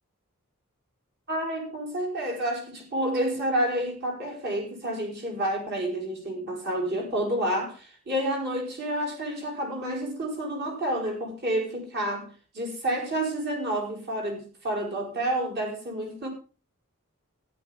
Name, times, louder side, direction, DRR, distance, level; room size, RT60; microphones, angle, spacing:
voice 1, 1.3-12.3 12.5-16.3, right 1 dB, 50° right, 5.0 m, -29 dB
14.0 x 11.5 x 3.6 m
head